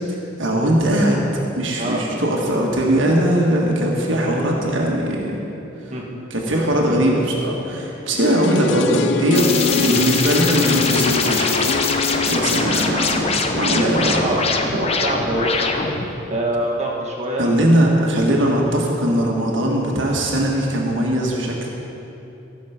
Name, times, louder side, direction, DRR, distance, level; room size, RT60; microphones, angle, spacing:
voice 1, 0.1-1.2 1.5-5.4 6.3-11.9 12.1-14.2 17.4-21.7, right 1 dB, 75° right, -1 dB, 1.5 m, -20 dB
voice 2, 1.8-2.1 5.9-6.2 12.3-12.4 13.7-15.7 16.3-18.1, right 1 dB, 35° right, -2 dB, 1.5 m, -25 dB
sound 1, 8.2-14.1 14.4-14.5, left 5 dB, 70° left, 0.5 m, -25 dB
sound 2, 9.3-16.1, left 4 dB, 30° left, 0.7 m, -22 dB
14.5 x 6.4 x 5.8 m, 2.9 s
head